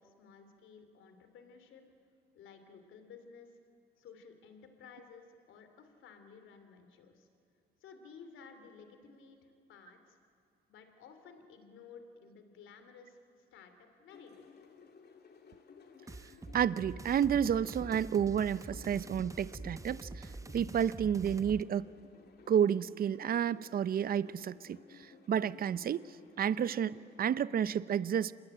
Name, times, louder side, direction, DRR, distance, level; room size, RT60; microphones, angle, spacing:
voice 1, 0.0-1.8 2.3-3.6 4.0-7.3 7.8-10.2 10.7-13.2 13.5-14.5, left 5 dB, 80° left, 8 dB, 3.0 m, -55 dB
sound 1, 14.1-27.4, left 5 dB, 55° left, 2.8 m, -57 dB
dance with me, 16.1-21.6, right 2 dB, 15° right, 0.9 m, -45 dB
voice 2, 16.5-20.3 20.5-21.9 22.5-26.0 26.4-28.3, right 8 dB, 50° right, 17 dB, 0.6 m, -31 dB
27.5 x 21.5 x 8.9 m, 2.4 s
cardioid pair, 90°, 20 cm